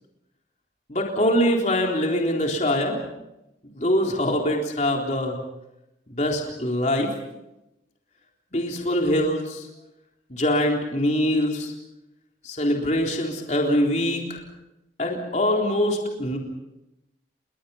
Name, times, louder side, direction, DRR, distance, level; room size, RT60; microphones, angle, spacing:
voice 1, 0.9-3.0 3.7-5.4 6.1-7.1 8.5-9.7 10.3-11.7 12.4-14.4 15.0-16.4, left 1 dB, 40° left, 0 dB, 3.8 m, -23 dB
29.5 x 22.0 x 5.7 m, 0.91 s
head